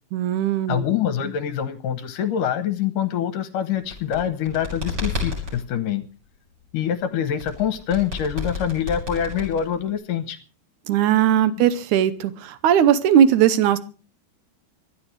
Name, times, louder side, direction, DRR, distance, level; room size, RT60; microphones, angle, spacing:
voice 1, 0.1-0.8 10.9-13.8, right 10 dB, 75° right, 13 dB, 1.8 m, -18 dB
voice 2, 0.7-6.1 6.7-10.4, left 9 dB, 70° left, 10 dB, 2.3 m, -25 dB
sound 1, 3.8-5.6 7.4-10.0, left 3 dB, 30° right, 6.4 m, -30 dB
25.0 x 11.5 x 3.3 m, 0.36 s
omnidirectional pair, 4.5 m